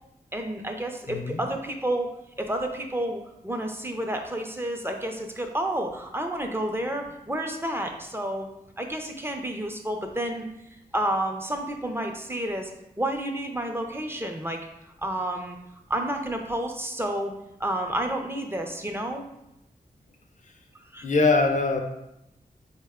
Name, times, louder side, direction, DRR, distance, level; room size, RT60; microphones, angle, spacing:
voice 1, 0.3-2.1 2.4-8.5 8.8-10.5 10.9-12.7 13.0-14.6 15.0-15.6 15.9-17.3 17.6-19.2 20.9-21.0, right 1 dB, 15° right, 3 dB, 0.5 m, -30 dB
voice 2, 1.1-1.4 21.0-21.8, left 3 dB, 50° left, 5 dB, 0.5 m, -22 dB
4.0 x 2.1 x 3.6 m, 0.86 s
cardioid pair, 50°, 16 cm